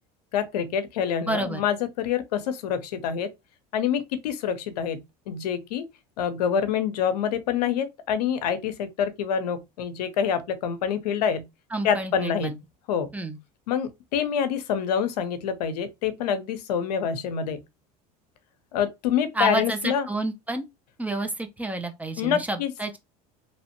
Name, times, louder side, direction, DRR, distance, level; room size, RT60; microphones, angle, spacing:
voice 1, 0.3-3.3 3.7-5.9 6.2-11.4 11.8-12.5 12.9-13.1 13.7-17.6 18.7-20.1 22.2-22.7, left 8 dB, 90° left, 0.5 m, -26 dB
voice 2, 1.3-1.6 11.7-12.6 13.1-13.4 19.3-20.6 21.0-23.0, right 1 dB, 5° right, 0.5 m, -29 dB
2.8 x 2.0 x 2.9 m
supercardioid pair, 95°, 20 cm